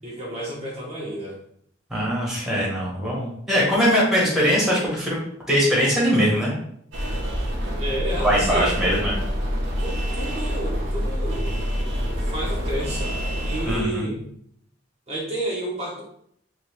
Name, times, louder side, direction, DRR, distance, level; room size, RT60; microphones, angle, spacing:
voice 1, 0.0-1.4 7.8-8.7 9.8-11.6 12.2-14.2 15.1-16.0, right 1 dB, 35° right, -6 dB, 1.0 m, -31 dB
voice 2, 1.9-5.2 5.5-6.5 8.2-9.2 13.6-14.1, equal, 5° right, -5 dB, 1.4 m, -21 dB
sound 1, 6.9-13.8, equal, 80° right, 1.1 m, -26 dB
3.6 x 2.9 x 3.5 m, 0.68 s
head